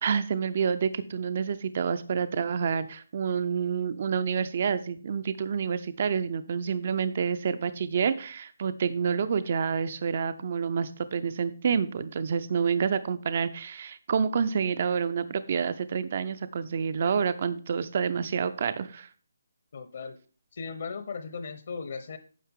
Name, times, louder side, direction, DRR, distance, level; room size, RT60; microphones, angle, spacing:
voice 1, 0.0-19.1, right 6 dB, 30° right, 13 dB, 0.4 m, -28 dB
voice 2, 19.7-20.2 20.5-22.2, left 5 dB, 40° left, 10 dB, 0.8 m, -37 dB
10.0 x 6.4 x 3.6 m, 0.39 s
hypercardioid pair, 175°, 0 cm